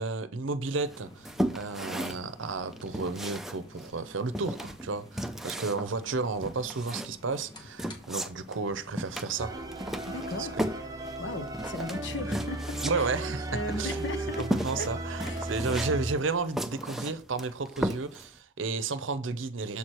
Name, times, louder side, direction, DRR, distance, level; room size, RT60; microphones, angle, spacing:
voice 1, 0.0-9.5 10.3-10.5 12.8-13.5 13.8-14.1 14.4-19.8, right 4 dB, 75° right, 0.7 m, -32 dB
sound 1, 0.8-16.8, left 1 dB, 25° left, 1.2 m, -54 dB
sound 2, 0.9-18.4, equal, ahead, 0.5 m, -36 dB
sound 3, 9.4-16.1, right 1 dB, 20° right, 0.9 m, -36 dB
voice 2, 10.0-10.5 11.2-13.1 13.5-14.4 14.8-14.9 15.2-15.5, left 2 dB, 65° left, 0.9 m, -37 dB
7.1 x 4.6 x 4.4 m
head